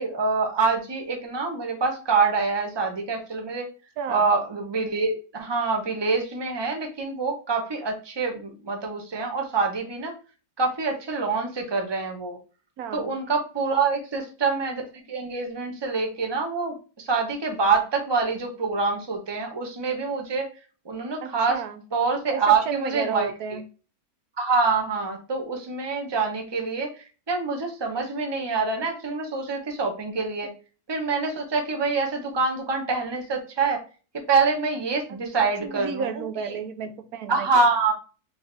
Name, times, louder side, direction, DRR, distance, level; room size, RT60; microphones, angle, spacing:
voice 1, 0.0-3.7 4.1-10.1 10.6-12.4 12.9-14.8 15.1-20.5 20.8-21.6 21.9-23.3 24.4-30.5 30.9-33.8 34.3-36.2 37.3-37.9, right 4 dB, 20° right, 3 dB, 0.9 m, -25 dB
voice 2, 4.0-4.3 12.8-13.1 21.2-21.8 22.3-23.7 35.4-37.7, right 6 dB, 80° right, 8 dB, 1.1 m, -32 dB
4.8 x 3.6 x 2.6 m, 0.35 s
omnidirectional pair, 1.6 m